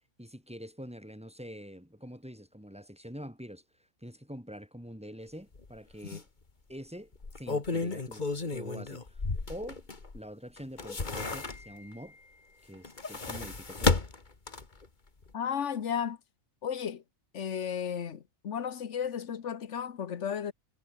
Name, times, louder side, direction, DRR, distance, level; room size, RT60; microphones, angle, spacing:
voice 1, 0.2-3.6 4.0-6.3 6.7-7.1 7.4-9.2 9.5-9.8 10.1-12.2 12.6-14.0, equal, 5° right, 5.7 m, -45 dB
sound 1, 5.5-5.7 6.1-6.2 7.1-10.2 10.6-11.9 12.7-14.9 15.2-15.3, left 3 dB, 35° left, 2.0 m, -33 dB
voice 2, 15.3-16.2 16.6-17.0 17.3-20.5, left 8 dB, 60° left, 1.4 m, -34 dB
omnidirectional pair, 1.4 m